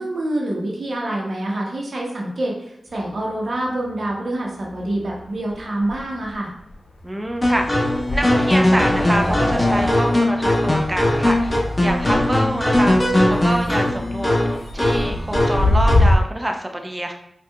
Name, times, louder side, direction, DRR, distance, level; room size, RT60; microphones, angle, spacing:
voice 1, 0.0-6.5, right 1 dB, 70° right, -2 dB, 0.9 m, -26 dB
sound 1, 2.9-4.1 4.5-16.2, left 2 dB, 75° left, 0.6 m, -27 dB
voice 2, 7.0-7.9 8.1-14.4 14.7-17.1, right 1 dB, 20° right, 3 dB, 0.6 m, -26 dB
sound 2, 7.4-16.1, left 1 dB, 30° left, 1.1 m, -19 dB
4.4 x 2.4 x 2.3 m, 0.81 s
cardioid pair, 45°, 0 cm